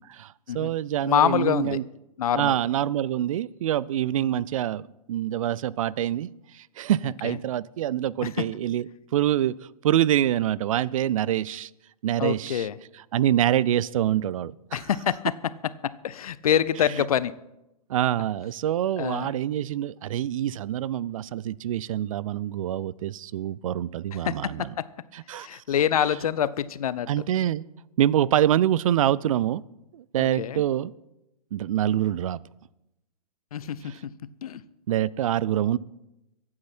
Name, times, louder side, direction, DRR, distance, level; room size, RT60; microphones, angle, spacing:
voice 1, 0.1-1.8 2.3-6.3 6.5-8.9 9.1-9.6 9.8-11.7 12.0-12.7 13.1-14.8 17.9-24.7 25.1-25.5 27.1-27.6 28.0-29.6 29.9-30.9 31.5-32.4 34.9-35.8, right 11 dB, 55° right, 22 dB, 0.5 m, -25 dB
voice 2, 1.0-1.8 2.2-2.6 4.3-4.4 7.2-7.4 8.2-8.5 12.2-12.8 14.7-15.2 16.0-17.3 19.0-19.3 24.1-24.8 25.3-27.1 30.2-30.6 33.5-33.9 34.4-34.6, left 9 dB, 65° left, 17 dB, 0.8 m, -26 dB
23.0 x 8.7 x 4.4 m, 0.91 s
figure-of-eight pair, 115°, 20 cm